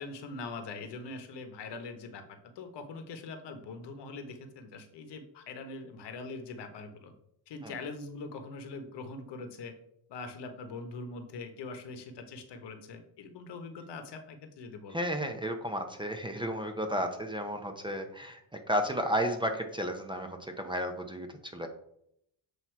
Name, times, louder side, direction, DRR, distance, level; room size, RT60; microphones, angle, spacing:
voice 1, 0.0-7.1 7.5-9.7 10.1-15.0, left 3 dB, 65° left, 7 dB, 1.2 m, -42 dB
voice 2, 14.9-21.7, equal, 10° right, 5 dB, 0.6 m, -33 dB
7.9 x 2.9 x 4.5 m, 0.73 s
cardioid pair, 105°, 44 cm